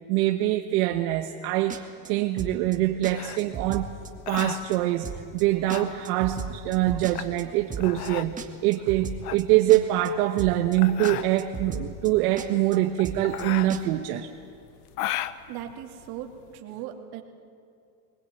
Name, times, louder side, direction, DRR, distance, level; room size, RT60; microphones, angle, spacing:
voice 1, 0.1-3.9 4.3-5.1 5.3-14.3, right 14 dB, 75° right, 4 dB, 1.3 m, -24 dB
sound 1, 1.7-2.1 2.4-2.8 3.0-3.1 3.4-4.1 4.4-4.8 5.0-5.4 5.7-7.4 7.7-8.1 8.4-9.4 9.7-10.1 10.4-10.8 11.0-11.1 11.4-12.1 12.4-12.8 13.0-13.4 13.7-13.8, right 6 dB, 15° right, 1.7 m, -35 dB
sound 2, 3.0-16.6, left 13 dB, 85° left, 1.1 m, -37 dB
voice 2, 15.5-17.2, right 11 dB, 55° right, 3 dB, 2.6 m, -38 dB
22.5 x 20.0 x 9.3 m, 2.5 s
supercardioid pair, 135°, 45 cm